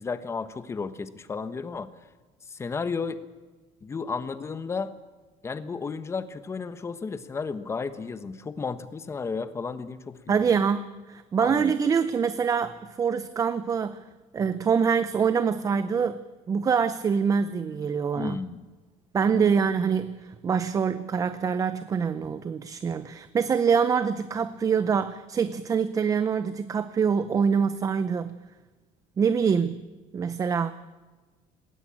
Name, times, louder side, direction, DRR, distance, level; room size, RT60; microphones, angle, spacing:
voice 1, 0.0-1.9 2.5-3.2 3.8-4.9 5.4-10.6 11.4-11.7 18.1-18.7 19.2-19.5, left 5 dB, 20° left, 12 dB, 1.1 m, -33 dB
voice 2, 10.3-14.0 14.3-16.2 16.5-18.4 19.1-28.4 29.2-29.8 30.1-30.7, right 6 dB, 25° right, 12 dB, 0.7 m, -25 dB
20.0 x 18.5 x 8.8 m, 1.3 s
cardioid pair, 160°, 14 cm